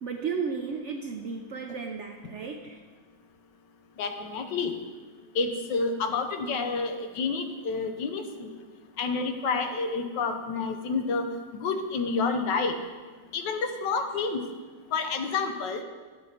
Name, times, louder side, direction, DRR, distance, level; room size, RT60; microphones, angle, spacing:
voice 1, 0.0-2.8, right 5 dB, 65° right, 3 dB, 0.7 m, -34 dB
voice 2, 4.0-4.7 5.3-8.6 9.0-11.3 11.6-12.7 13.3-14.4 14.9-15.8, left 4 dB, 90° left, 6 dB, 1.5 m, -29 dB
11.5 x 7.7 x 4.3 m, 1.5 s
omnidirectional pair, 1.9 m